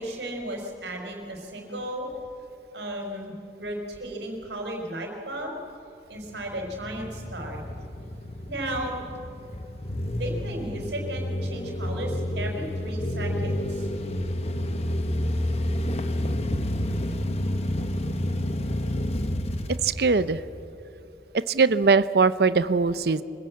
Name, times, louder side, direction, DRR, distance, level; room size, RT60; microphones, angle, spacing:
voice 1, 0.0-2.1 2.7-5.6 6.1-7.6 8.5-8.9 10.1-13.9, right 1 dB, 80° right, 2 dB, 4.4 m, -34 dB
sound 1, 6.3-20.6, left 1 dB, 35° left, 1.1 m, -30 dB
voice 2, 19.8-20.4 21.5-23.2, right 4 dB, 60° right, 15 dB, 0.6 m, -21 dB
25.5 x 16.0 x 8.5 m, 2.7 s
head